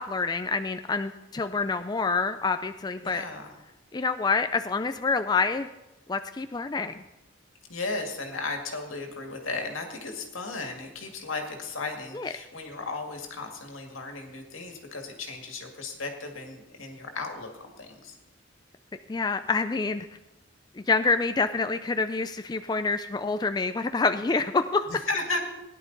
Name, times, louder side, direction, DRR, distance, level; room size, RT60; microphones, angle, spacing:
voice 1, 0.0-3.2 3.9-5.7 6.1-7.0 12.1-12.3 19.1-20.1 20.9-24.9, left 4 dB, 20° left, 9 dB, 0.3 m, -27 dB
voice 2, 3.0-3.5 7.7-18.2 24.9-25.4, left 3 dB, 85° left, 3 dB, 2.0 m, -35 dB
17.5 x 10.5 x 4.0 m, 0.96 s
head